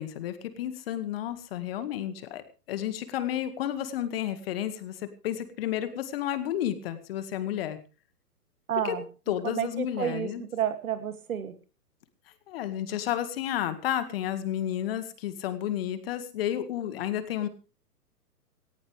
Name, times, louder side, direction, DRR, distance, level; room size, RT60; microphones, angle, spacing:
voice 1, 0.0-7.8 8.8-8.9 9.3-10.4 12.5-17.5, left 11 dB, 35° left, 11 dB, 2.0 m, -31 dB
voice 2, 8.7-9.0 9.4-11.6, right 9 dB, 60° right, 9 dB, 2.7 m, -30 dB
18.0 x 17.0 x 3.4 m, 0.34 s
figure-of-eight pair, 125°, 48 cm